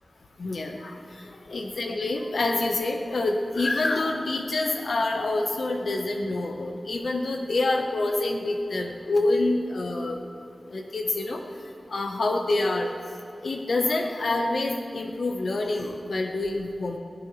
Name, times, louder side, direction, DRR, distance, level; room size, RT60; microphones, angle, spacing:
voice 1, 0.4-1.0 1.5-10.2 10.7-11.4 11.9-12.9 13.4-17.0, left 2 dB, 75° left, 3 dB, 1.3 m, -27 dB
21.0 x 16.5 x 3.4 m, 2.6 s
wide cardioid pair, 70°, 0 cm